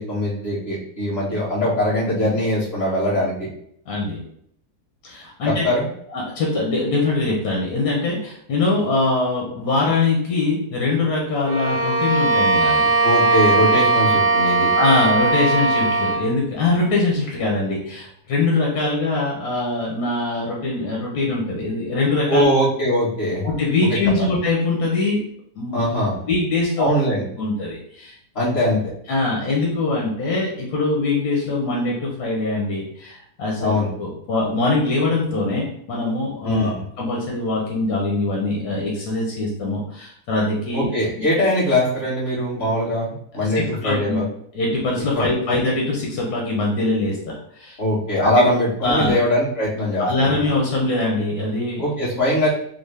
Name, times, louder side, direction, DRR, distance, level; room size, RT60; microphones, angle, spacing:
voice 1, 0.0-3.5 5.6-5.9 13.0-14.7 22.3-23.5 24.2-24.3 25.7-26.1 26.8-27.2 28.3-28.8 33.6-33.9 36.4-36.7 40.7-44.2 45.1-45.2 47.8-50.1 51.8-52.5, left 1 dB, 45° left, -9 dB, 1.5 m, -21 dB
voice 2, 3.9-4.2 5.0-5.7 6.1-12.9 14.8-22.5 23.4-25.2 25.6-25.8 26.3-26.9 27.4-28.2 29.1-33.7 34.0-40.9 43.5-44.2 44.5-47.2 47.6-47.8 48.2-48.3 48.8-49.1 50.0-51.8, left 2 dB, 90° left, -2 dB, 1.3 m, -22 dB
Bowed string instrument, 11.4-16.3, right 3 dB, 85° right, 1.2 m, -19 dB
3.8 x 2.0 x 3.2 m, 0.69 s
omnidirectional pair, 1.6 m